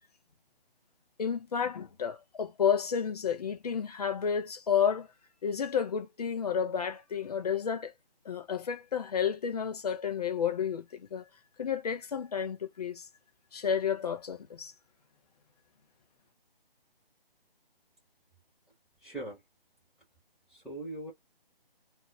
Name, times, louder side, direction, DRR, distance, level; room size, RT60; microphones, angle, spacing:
voice 1, 1.2-5.1 5.4-7.9 8.2-11.2 11.6-13.0 13.5-14.7, left 7 dB, 40° left, 0.9 m, -31 dB
voice 2, 19.0-19.4 20.5-21.1, right 2 dB, ahead, 1.8 m, -40 dB
4.0 x 2.9 x 3.1 m
figure-of-eight pair, 155°, 30 cm